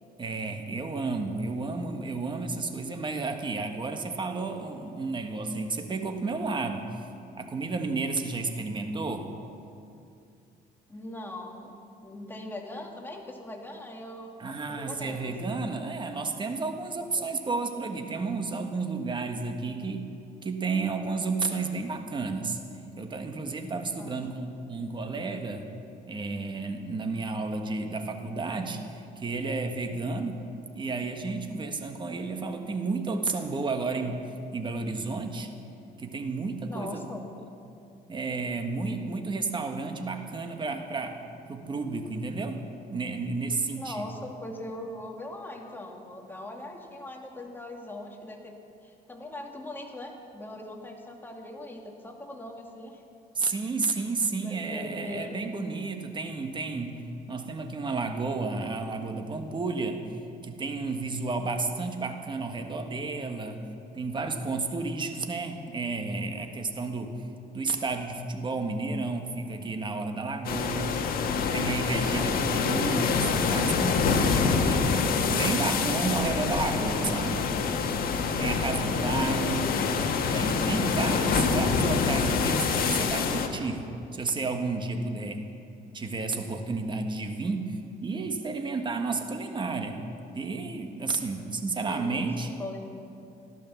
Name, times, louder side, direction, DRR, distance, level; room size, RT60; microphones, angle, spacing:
voice 1, 0.2-7.1 7.3-9.3 14.4-20.1 20.4-22.6 23.0-25.7 26.1-30.4 30.7-35.5 36.0-37.1 38.1-41.2 41.5-42.7 42.9-44.1 53.4-60.2 60.4-63.7 63.9-67.2 67.5-71.1 71.5-74.9 75.3-77.5 78.4-79.7 80.3-85.5 85.9-90.0 90.3-92.5, right 3 dB, 30° right, 5 dB, 1.6 m, -32 dB
voice 2, 10.9-11.7 12.0-15.6 17.2-17.3 24.0-24.1 36.7-37.2 43.8-48.6 48.8-53.0 54.4-55.4 78.7-79.8 91.9-92.9, left 1 dB, 10° left, 1 dB, 2.3 m, -41 dB
sound 1, 70.4-83.5, left 5 dB, 60° left, 1.5 m, -26 dB
15.5 x 12.0 x 7.2 m, 2.6 s
cardioid pair, 110°, 17 cm